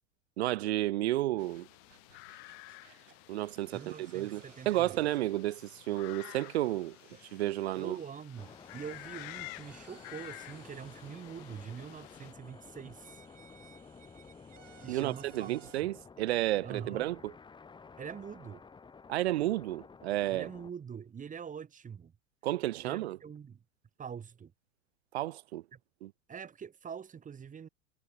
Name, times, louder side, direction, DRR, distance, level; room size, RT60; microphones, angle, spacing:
voice 1, 0.4-1.7 2.9-3.0 3.3-7.0 7.3-8.0 14.9-17.3 19.1-20.5 22.4-23.2 25.1-25.6 26.0-26.1, right 15 dB, 55° right, 0.6 m, -32 dB
sound 1, 1.3-15.8, right 7 dB, 70° right, 3.7 m, -61 dB
sound 2, 1.4-12.3, left 40 dB or more, 45° left, 2.6 m, -51 dB
voice 2, 3.7-5.1 7.7-13.2 14.8-15.9 16.6-17.1 18.0-18.6 20.3-22.1 22.8-23.6 24.0-24.5 25.7-25.8 26.3-27.7, right 7 dB, 20° right, 4.0 m, -44 dB
sound 3, 8.4-20.7, left 5 dB, 10° left, 1.7 m, -53 dB
figure-of-eight pair, 90°, 38 cm